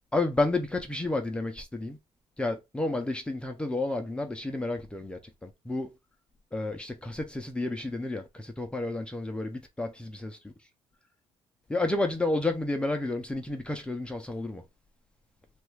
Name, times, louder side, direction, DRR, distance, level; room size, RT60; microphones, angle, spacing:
voice 1, 0.1-2.0 2.4-5.9 6.5-10.4 11.7-14.6, left 2 dB, 10° left, 0.4 m, -31 dB
3.2 x 2.3 x 3.1 m
cardioid pair, 145°, 11 cm